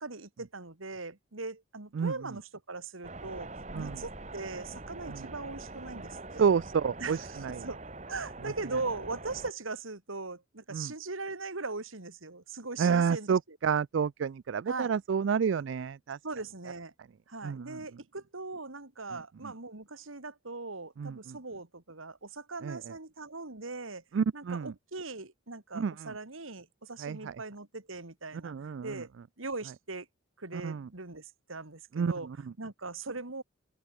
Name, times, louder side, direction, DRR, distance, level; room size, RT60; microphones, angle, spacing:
voice 1, 0.0-3.5 3.7-6.5 7.0-7.8 8.1-13.6 14.6-14.9 16.2-16.9 17.3-24.0 24.3-29.1 29.4-30.1 30.4-33.4, right 3 dB, 85° right, 2.6 m, -40 dB
sound 1, 3.0-9.5, right 2 dB, 35° right, 2.2 m, -44 dB
voice 2, 6.4-7.2 7.4-7.6 10.7-10.9 12.8-16.2 17.4-17.8 21.0-21.4 22.6-22.8 24.1-24.7 25.7-26.1 27.0-27.3 28.4-29.0 30.6-30.9 32.0-32.1, right 6 dB, 65° right, 0.4 m, -29 dB
open air
head